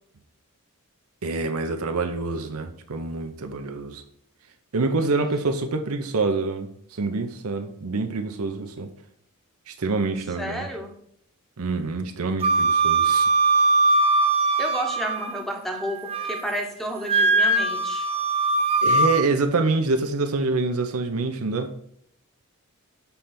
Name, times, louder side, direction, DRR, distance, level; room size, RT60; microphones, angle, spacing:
voice 1, 1.2-4.0 4.7-8.9 9.7-10.7 11.6-13.3 18.8-21.7, right 3 dB, 70° right, 6 dB, 0.6 m, -26 dB
voice 2, 10.4-10.9 14.6-18.1, equal, ahead, 2 dB, 1.0 m, -31 dB
Wind instrument woodwind instrument, 12.4-15.4 15.8-16.5 17.1-19.3, right 3 dB, 25° right, 0.4 m, -21 dB
7.0 x 3.3 x 5.7 m, 0.68 s
head